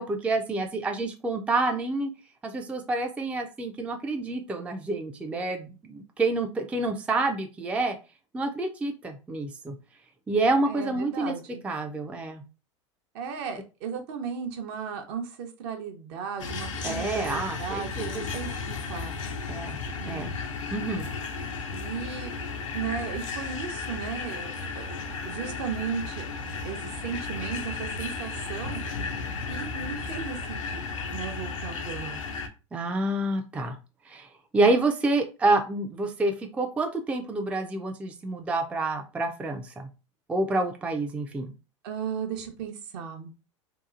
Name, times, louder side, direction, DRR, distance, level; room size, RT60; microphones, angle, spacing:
voice 1, 0.0-2.1 2.4-8.0 8.3-9.7 10.3-11.4 11.6-12.4 16.8-18.3 19.5-19.8 20.0-20.3 20.7-21.1 32.7-33.8 34.1-34.3 34.5-39.9 40.3-41.5, right 2 dB, 10° right, 4 dB, 0.3 m, -28 dB
voice 2, 10.7-11.6 13.1-19.2 20.0-20.3 21.7-22.4 22.7-24.9 25.2-26.2 26.6-28.8 29.5-30.9 31.1-32.2 41.8-43.3, right 7 dB, 55° right, 5 dB, 0.7 m, -36 dB
sound 1, 16.4-32.5, left 4 dB, 85° left, 0.5 m, -34 dB
2.8 x 2.3 x 2.4 m, 0.31 s
hypercardioid pair, 90°, 16 cm